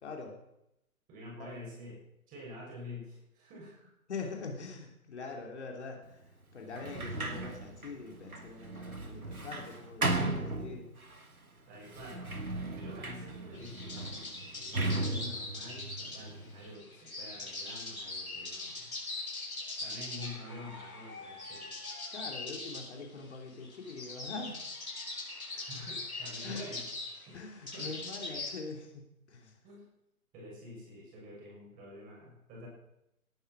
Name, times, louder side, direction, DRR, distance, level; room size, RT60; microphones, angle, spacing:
voice 1, 0.0-0.4 1.4-1.5 4.1-6.2 6.5-10.9 22.1-24.7 26.4-26.6 27.3-29.6, left 4 dB, 50° left, 1 dB, 3.2 m, -43 dB
voice 2, 1.1-3.9 11.7-12.3 12.8-18.9 19.7-21.7 25.5-26.9 27.3-27.4 27.7-27.9 29.6-29.9 30.3-32.7, left 1 dB, 20° right, -2 dB, 6.9 m, -47 dB
Sliding door, 6.7-11.2 11.9-16.7, right 2 dB, 75° right, 2.6 m, -36 dB
sound 1, 13.5-28.6, left 2 dB, 70° left, 6.3 m, -42 dB
18.5 x 11.5 x 6.2 m, 0.85 s
figure-of-eight pair, 135°, 43 cm